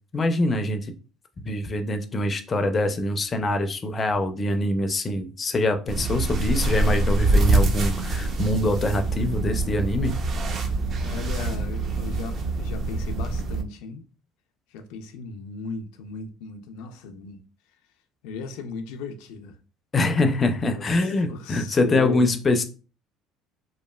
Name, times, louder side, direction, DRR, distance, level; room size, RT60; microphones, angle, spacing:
voice 1, 0.1-0.9 1.4-10.2 19.9-22.6, left 2 dB, 25° left, 0.4 m, -24 dB
sound 1, 5.9-13.6, right 2 dB, 40° right, 0.5 m, -25 dB
voice 2, 10.9-14.1 14.7-17.4 18.2-19.6 20.3-22.3, left 5 dB, 85° left, 0.4 m, -37 dB
3.0 x 2.3 x 2.2 m
cardioid pair, 120°, 0 cm